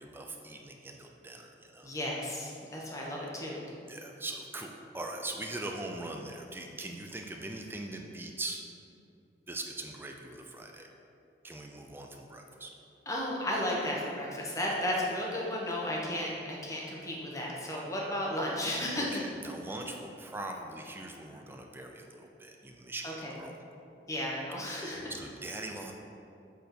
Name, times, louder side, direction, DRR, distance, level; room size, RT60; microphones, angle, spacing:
voice 1, 0.0-1.9 3.9-8.6 9.5-10.9 11.4-12.7 19.0-23.6 24.6-25.9, right 2 dB, 10° right, 2 dB, 0.4 m, -41 dB
voice 2, 1.8-3.6 13.1-19.2 23.0-23.3 24.1-25.0, left 1 dB, 20° left, -3 dB, 1.2 m, -34 dB
8.2 x 4.3 x 5.9 m, 2.7 s
head